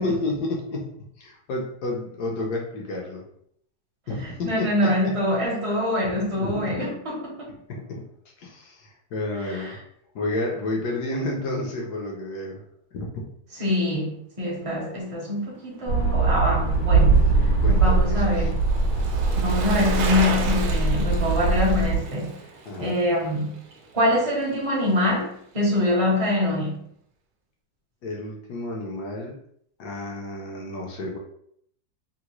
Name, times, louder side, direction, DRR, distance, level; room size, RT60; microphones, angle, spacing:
voice 1, 0.0-3.2 4.1-5.1 6.0-6.8 7.7-8.0 8.4-9.8 10.1-12.6 12.9-13.3 17.0-18.2 22.7-22.9 28.0-29.4 29.8-31.2, left 2 dB, 65° left, 0 dB, 1.1 m, -31 dB
voice 2, 4.4-7.5 9.4-9.8 13.6-17.3 17.7-18.6 19.4-22.4 22.8-23.6 23.9-26.8, left 1 dB, 35° right, -4 dB, 0.5 m, -24 dB
sound 1, 15.9-22.0, right 3 dB, 90° left, 1.7 m, -21 dB
Bicycle, 16.2-24.6 24.9-25.0, right 4 dB, 85° right, 0.7 m, -35 dB
3.7 x 2.1 x 2.9 m, 0.68 s
omnidirectional pair, 2.0 m